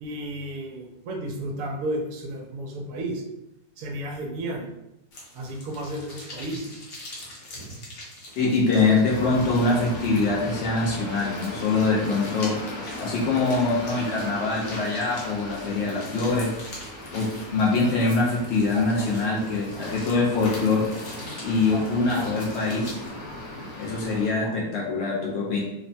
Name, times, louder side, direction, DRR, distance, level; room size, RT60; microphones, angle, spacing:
voice 1, 0.0-3.2 3.8-4.7 5.3-6.7 18.7-19.1 19.7-19.9 21.7-22.3 22.6-22.7 24.4-24.5, right 1 dB, 70° right, 1 dB, 1.0 m, -33 dB
sound 1, 5.1-23.1, left 1 dB, 65° left, 1.2 m, -44 dB
voice 2, 8.4-12.6 13.0-16.5 17.1-20.9 21.4-23.0 23.8-25.6, left 3 dB, 85° left, -3 dB, 0.6 m, -24 dB
sound 2, 9.1-24.3, left 1 dB, 15° left, 0.6 m, -38 dB
3.0 x 2.1 x 2.6 m, 0.89 s
omnidirectional pair, 1.7 m